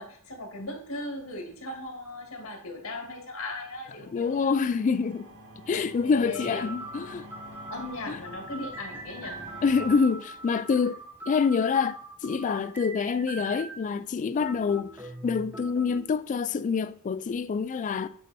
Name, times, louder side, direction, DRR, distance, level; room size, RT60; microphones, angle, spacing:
voice 1, 0.0-4.6 6.0-6.7 7.7-9.5, left 2 dB, 85° left, 1.8 m, -38 dB
voice 2, 4.1-5.3 5.7-7.3 8.1-8.2 9.6-14.9 15.2-18.1, left 5 dB, 35° left, 0.3 m, -26 dB
sound 1, 4.1-11.1, equal, 55° right, 2.5 m, -48 dB
sound 2, 5.7-5.8 6.3-13.9 14.4-16.1, right 2 dB, 10° right, 0.6 m, -42 dB
8.3 x 2.8 x 4.1 m
head